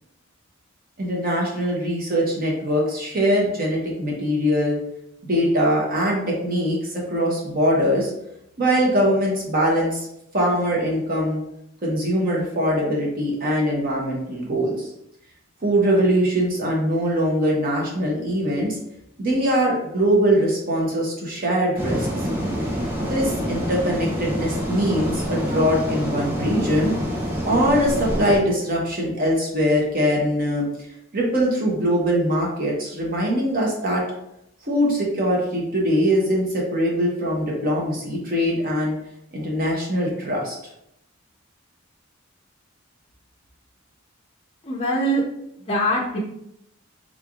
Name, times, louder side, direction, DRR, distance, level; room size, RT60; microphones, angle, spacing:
voice 1, 1.0-4.8 5.2-8.1 8.6-10.1 10.3-11.4 11.8-14.9 15.6-18.8 19.2-22.1 23.0-27.0 27.4-30.7 31.1-34.0 34.6-38.9 39.3-40.6, equal, 45° right, -3 dB, 0.8 m, -22 dB
sound 1, 21.8-28.4, equal, 10° right, 0.8 m, -26 dB
voice 2, 44.6-45.2 45.6-46.2, equal, 30° left, -3 dB, 0.5 m, -22 dB
3.6 x 3.2 x 2.4 m, 0.79 s
head